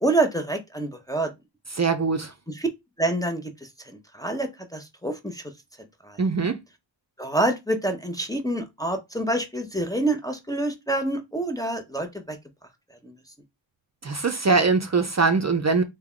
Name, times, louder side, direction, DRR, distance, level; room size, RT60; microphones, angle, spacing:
voice 1, 0.0-1.3 2.5-2.7 3.0-3.4 3.9-5.4 6.0-6.2 7.2-12.4 13.0-13.1, right 2 dB, 10° left, 0.5 m, -27 dB
voice 2, 1.8-2.3 6.2-6.6 14.0-15.8, right 4 dB, 35° right, 0.5 m, -22 dB
3.4 x 2.2 x 3.6 m
wide cardioid pair, 55°, 46 cm